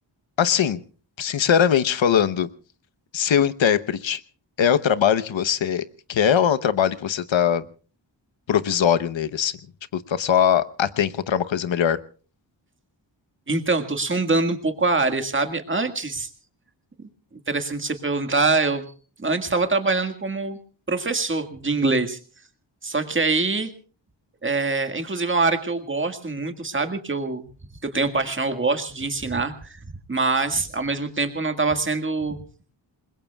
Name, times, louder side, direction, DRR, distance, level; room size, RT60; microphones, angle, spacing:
voice 1, 0.4-0.8 1.2-2.5 3.1-4.2 4.6-5.8 6.1-7.6 8.5-9.6 9.9-12.0, left 8 dB, 85° left, 13 dB, 1.0 m, -21 dB
voice 2, 13.5-16.3 17.5-18.9 19.2-20.6 20.9-22.2 22.8-23.7 24.4-27.5 27.8-29.8 30.1-32.4, right 3 dB, 25° right, 7 dB, 1.8 m, -24 dB
28.0 x 21.5 x 2.3 m, 0.38 s
wide cardioid pair, 150°, 45 cm